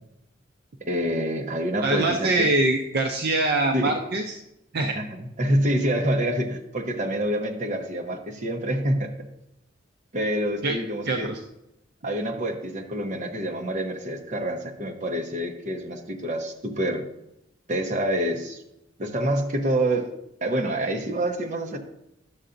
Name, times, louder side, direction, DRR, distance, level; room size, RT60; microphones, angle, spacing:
voice 1, 0.8-2.5 3.7-3.9 4.9-9.1 10.1-11.3 12.0-17.0 17.7-18.6 19.0-20.1 20.4-21.8, right 1 dB, 40° right, 2 dB, 0.9 m, -27 dB
voice 2, 1.8-4.2 4.7-5.0 10.6-10.7 11.1-11.4, right 2 dB, 55° right, 3 dB, 0.5 m, -23 dB
11.0 x 6.7 x 2.5 m, 0.85 s
head